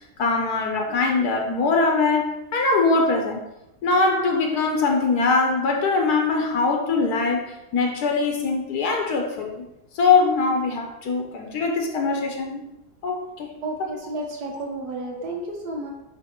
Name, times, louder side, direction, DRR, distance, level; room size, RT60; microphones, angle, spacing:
voice 1, 0.2-3.4 3.8-9.7 9.9-12.6 13.0-13.5 15.2-15.4, left 4 dB, 80° left, 2 dB, 1.5 m, -22 dB
voice 2, 13.6-15.9, right 2 dB, 85° right, 0 dB, 1.9 m, -32 dB
9.1 x 3.1 x 4.5 m, 0.92 s
omnidirectional pair, 1.7 m